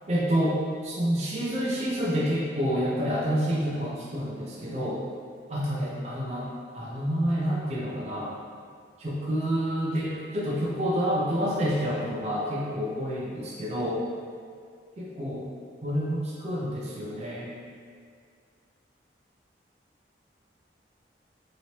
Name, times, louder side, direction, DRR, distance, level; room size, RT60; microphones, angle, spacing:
voice 1, 0.1-5.0 5.5-6.4 6.7-8.3 9.0-14.0 15.0-15.4 15.8-17.5, equal, 35° right, -6 dB, 0.4 m, -28 dB
2.9 x 2.9 x 2.8 m, 2.1 s
head